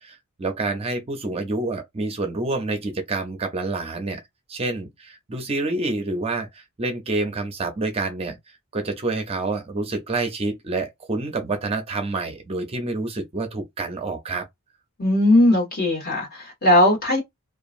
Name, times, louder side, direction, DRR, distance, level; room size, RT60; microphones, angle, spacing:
voice 1, 0.0-4.2 4.5-14.5, right 2 dB, 25° right, 0.5 m, -28 dB
voice 2, 15.0-17.2, left 1 dB, 45° left, 1.5 m, -18 dB
2.9 x 2.3 x 2.4 m
head